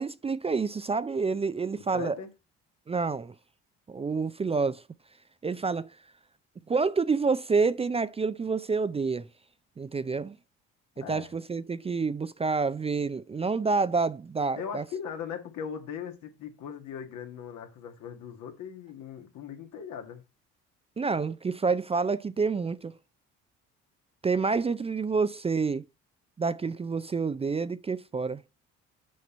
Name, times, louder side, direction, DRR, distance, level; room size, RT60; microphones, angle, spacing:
voice 1, 0.0-2.2 2.9-3.3 3.9-4.8 5.4-6.0 6.7-9.3 9.8-10.4 11.0-14.8 21.0-23.0 24.2-25.8 26.4-28.4, right 4 dB, 20° right, 0.4 m, -28 dB
voice 2, 1.8-2.3 11.0-11.3 14.5-20.2, left 7 dB, 75° left, 1.8 m, -39 dB
6.2 x 5.8 x 4.3 m
supercardioid pair, 65°, 30 cm